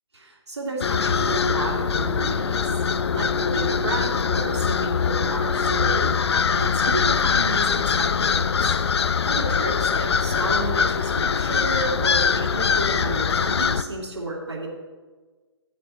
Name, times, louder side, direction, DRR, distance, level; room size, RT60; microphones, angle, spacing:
voice 1, 0.1-2.7 3.1-8.8 9.2-14.7, right 1 dB, 75° right, -2 dB, 2.6 m, -31 dB
sound 1, 0.8-13.8, left 6 dB, 70° left, 0.5 m, -22 dB
10.5 x 7.2 x 4.2 m, 1.4 s
figure-of-eight pair, 135°, 15 cm